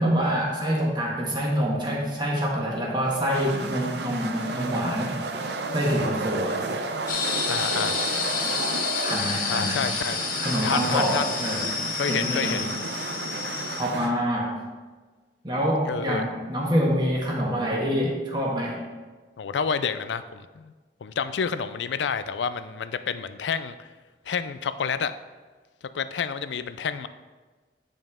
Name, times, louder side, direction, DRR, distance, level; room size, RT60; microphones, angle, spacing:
voice 1, 0.0-5.1 5.7-6.6 9.0-9.8 10.4-11.7 12.1-12.6 13.7-14.5 15.4-18.8, equal, 25° right, -2 dB, 1.5 m, -26 dB
sound 1, 3.0-14.1, right 3 dB, 70° right, 0.6 m, -32 dB
voice 2, 6.4-6.8 7.5-8.0 9.5-10.2 10.6-11.3 12.0-12.7 14.2-14.4 15.8-16.2 19.4-20.7 21.0-23.9 24.3-25.1 25.9-27.1, left 6 dB, 85° left, 13 dB, 0.4 m, -29 dB
sound 2, 7.1-13.8, left 5 dB, 50° left, 1.0 m, -30 dB
9.4 x 5.4 x 3.6 m, 1.3 s
head